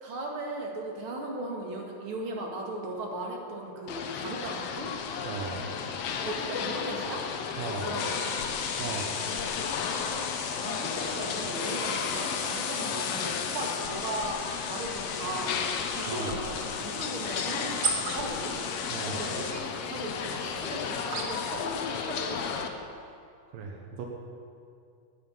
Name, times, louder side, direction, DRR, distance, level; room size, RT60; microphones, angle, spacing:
voice 1, 0.0-4.9 6.2-7.2 7.8-8.1 9.1-10.2 10.6-14.4 14.7-15.6 15.9-18.5 19.1-22.7, right 1 dB, 45° right, 0 dB, 2.3 m, -37 dB
sound 1, 3.9-22.7, left 6 dB, 80° left, 1.3 m, -34 dB
voice 2, 5.2-5.7 7.6-7.9 8.8-9.1 16.1-16.4 18.9-19.3 22.9-23.2 23.5-24.1, right 4 dB, 85° right, 1 dB, 3.0 m, -37 dB
sound 2, 8.0-19.5, left 6 dB, 65° left, 1.4 m, -37 dB
sound 3, 15.1-21.6, right 3 dB, 65° right, 0.8 m, -39 dB
11.5 x 9.9 x 9.3 m, 2.4 s
omnidirectional pair, 3.9 m